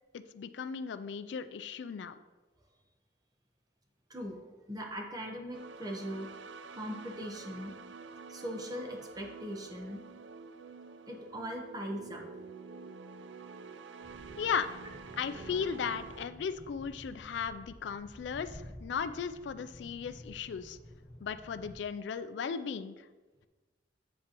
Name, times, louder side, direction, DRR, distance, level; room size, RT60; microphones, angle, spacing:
voice 1, 0.1-2.2 14.4-14.7 15.2-20.8 21.2-23.0, left 6 dB, 70° left, 12 dB, 0.3 m, -36 dB
voice 2, 4.7-6.3 6.7-7.8 8.3-10.0 11.1-12.2, equal, 20° right, 2 dB, 1.0 m, -40 dB
sound 1, 5.5-16.3, right 4 dB, 75° right, 0.4 m, -48 dB
sound 2, 14.0-21.8, equal, 35° left, 1.1 m, -51 dB
8.0 x 7.5 x 3.0 m, 1.3 s
head